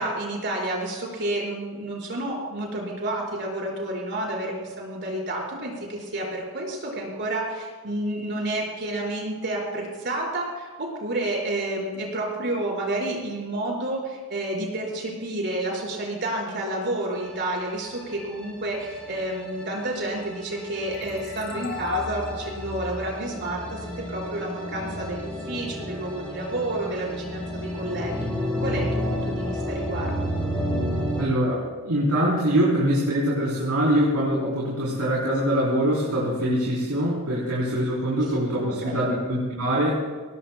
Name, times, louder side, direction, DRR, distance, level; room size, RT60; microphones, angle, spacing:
voice 1, 0.0-28.3 28.6-30.1 38.2-39.1, right 1 dB, 55° right, -3 dB, 5.0 m, -30 dB
sound 1, 17.2-31.3, equal, 5° left, 4.0 m, -31 dB
sound 2, 20.9-24.3, left 7 dB, 65° left, 2.7 m, -36 dB
voice 2, 31.2-40.0, equal, 80° right, -6 dB, 3.9 m, -23 dB
22.5 x 19.0 x 2.3 m, 1.5 s
head